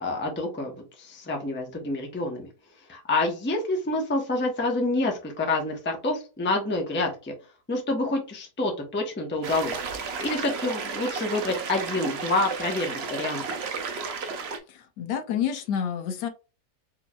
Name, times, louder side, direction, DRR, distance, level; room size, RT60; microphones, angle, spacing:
voice 1, 0.0-0.7 1.0-2.5 2.9-7.3 7.7-13.4, left 2 dB, 10° left, 2 dB, 0.5 m, -28 dB
sound 1, 9.4-14.6, right 5 dB, 70° right, 0.6 m, -33 dB
voice 2, 14.7-16.3, left 8 dB, 75° left, 7 dB, 1.2 m, -29 dB
4.6 x 3.0 x 2.3 m, 0.32 s
omnidirectional pair, 1.9 m